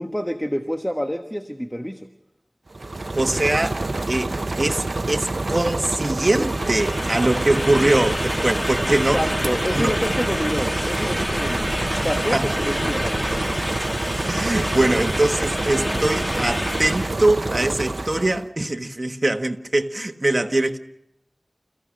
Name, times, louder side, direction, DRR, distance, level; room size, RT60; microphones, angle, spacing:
voice 1, 0.0-2.1 8.9-11.7 12.0-13.5, equal, 5° left, 1.3 m, -28 dB
sound 1, 2.7-18.5, right 2 dB, 60° right, 0.7 m, -27 dB
voice 2, 3.2-9.3 9.7-10.0 12.3-12.5 14.3-20.8, right 2 dB, 40° right, 1.4 m, -22 dB
sound 2, 6.3-17.2, left 1 dB, 20° left, 1.5 m, -28 dB
30.0 x 15.5 x 6.4 m
wide cardioid pair, 50°, 0 cm